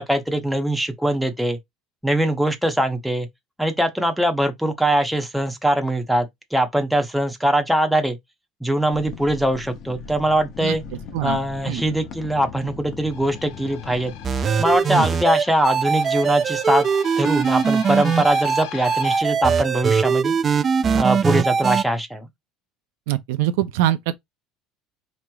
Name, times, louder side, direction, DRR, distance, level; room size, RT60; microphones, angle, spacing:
voice 1, 0.0-1.6 2.0-3.3 3.6-8.2 8.6-10.8 11.2-14.1 14.6-16.9 17.2-20.4 20.9-22.3, right 1 dB, ahead, 0.7 m, -22 dB
sound 1, 8.9-14.8, left 6 dB, 45° left, 0.7 m, -39 dB
sound 2, 13.1-19.2, left 10 dB, 80° left, 0.9 m, -39 dB
sound 3, 14.2-21.8, right 6 dB, 25° right, 0.3 m, -21 dB
voice 2, 23.1-24.1, right 13 dB, 90° right, 0.4 m, -23 dB
4.8 x 3.0 x 2.3 m
cardioid pair, 155°, 0 cm